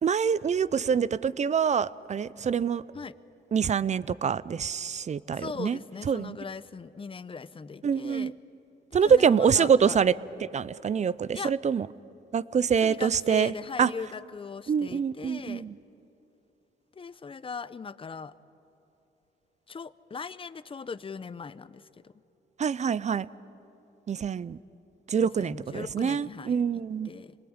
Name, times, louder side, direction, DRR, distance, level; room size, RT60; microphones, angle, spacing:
voice 1, 0.0-2.8 3.5-5.8 6.1-6.4 7.8-8.3 8.9-10.1 10.4-11.9 12.3-13.5 13.8-13.9 14.7-15.7 22.6-23.3 24.1-24.6 25.1-27.1, right 7 dB, 35° right, 19 dB, 0.5 m, -25 dB
voice 2, 5.3-8.3 9.0-10.0 11.3-11.5 12.8-15.7 16.9-18.3 19.7-22.2 25.2-27.4, left 5 dB, 25° left, 16 dB, 0.7 m, -40 dB
26.5 x 20.5 x 8.8 m, 3.0 s
cardioid pair, 90°, 20 cm